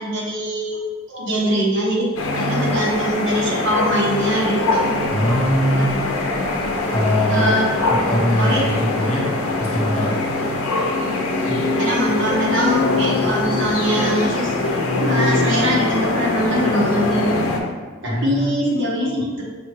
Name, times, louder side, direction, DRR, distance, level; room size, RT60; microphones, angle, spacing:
voice 1, 0.0-4.9 5.2-5.4 5.7-5.8 7.3-7.6 8.4-8.6 11.8-14.5 15.0-17.4 18.0-19.4, equal, 60° right, -4 dB, 0.9 m, -22 dB
sound 1, 2.2-17.6, left 2 dB, 90° left, 0.6 m, -22 dB
voice 2, 5.1-5.9 6.9-7.5 7.9-10.2 11.5-11.6 18.0-18.6, equal, 30° left, -6 dB, 0.9 m, -21 dB
5.2 x 2.2 x 3.1 m, 1.4 s
head